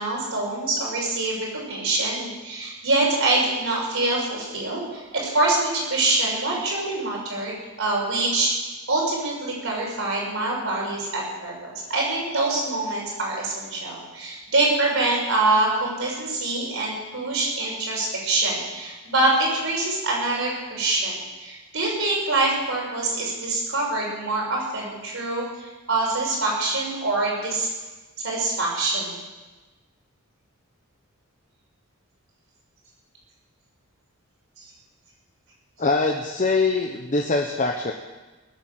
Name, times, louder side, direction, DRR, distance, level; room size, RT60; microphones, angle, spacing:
voice 1, 0.0-8.5 8.9-27.7 28.2-29.2 34.6-34.7, right 2 dB, 65° right, -3 dB, 6.1 m, -25 dB
voice 2, 35.8-37.9, left 3 dB, 35° left, 2 dB, 1.0 m, -23 dB
20.0 x 8.2 x 7.7 m, 1.2 s
head